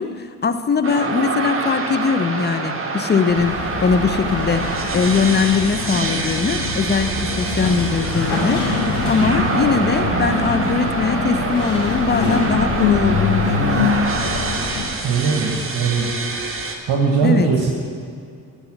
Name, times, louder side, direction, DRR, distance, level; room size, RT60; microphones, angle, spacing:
voice 1, 0.0-8.7 9.1-14.0 17.2-17.5, left 5 dB, 20° left, 10 dB, 0.6 m, -21 dB
sound 1, 0.8-16.8, right 4 dB, 25° right, 1.3 m, -26 dB
sound 2, 3.3-14.9, left 3 dB, 55° left, 2.5 m, -24 dB
voice 2, 15.0-16.1 16.9-17.7, right 5 dB, 50° right, 0 dB, 1.4 m, -19 dB
10.5 x 4.9 x 7.3 m, 2.3 s
hypercardioid pair, 60°, 48 cm